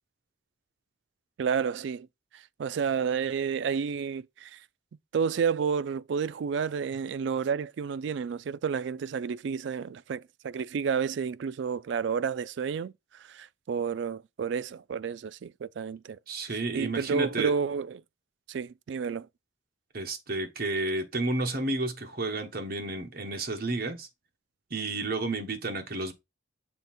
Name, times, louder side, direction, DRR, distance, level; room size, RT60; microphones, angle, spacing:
voice 1, 1.4-2.1 2.3-4.6 5.1-18.0 18.5-19.3, right 6 dB, 65° right, 0.3 m, -31 dB
voice 2, 16.3-17.5 19.9-24.1 24.7-26.1, right 2 dB, 50° right, 1.3 m, -31 dB
6.9 x 3.4 x 4.2 m
head